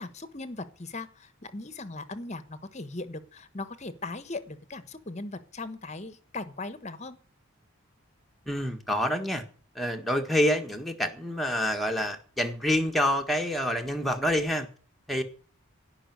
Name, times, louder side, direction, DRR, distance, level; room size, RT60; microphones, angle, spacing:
voice 1, 0.0-7.2, left 2 dB, 30° left, 13 dB, 1.2 m, -39 dB
voice 2, 8.4-9.4 9.7-14.7 15.1-15.2, equal, ahead, 2 dB, 1.7 m, -27 dB
17.0 x 5.9 x 9.4 m, 0.43 s
head